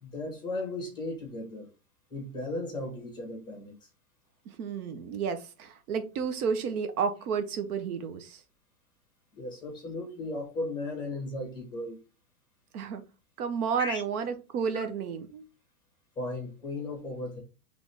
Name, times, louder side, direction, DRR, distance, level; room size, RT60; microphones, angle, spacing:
voice 1, 0.0-1.7 2.1-3.7 9.4-12.0 13.8-14.0 14.7-14.8 16.1-17.4, left 2 dB, 10° left, 1.5 m, -36 dB
voice 2, 4.5-8.4 12.7-13.0 13.4-15.4, right 6 dB, 70° right, 1.0 m, -31 dB
3.9 x 3.4 x 3.4 m
supercardioid pair, 155°, 46 cm